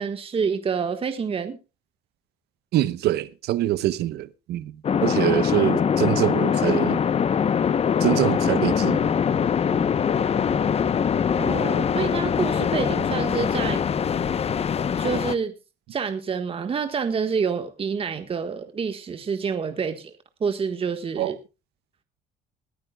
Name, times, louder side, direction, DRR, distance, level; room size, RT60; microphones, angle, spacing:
voice 1, 0.0-1.6 11.4-14.0 15.0-15.5 15.9-20.1 20.4-21.3, right 6 dB, 35° right, 1.5 m, -27 dB
voice 2, 2.7-4.7 5.0-7.0 8.0-9.0 21.2-21.3, right 14 dB, 75° right, 0.9 m, -24 dB
sound 1, 4.8-15.3, left 7 dB, 35° left, 0.9 m, -23 dB
20.5 x 14.0 x 2.3 m
cardioid pair, 110°, 17 cm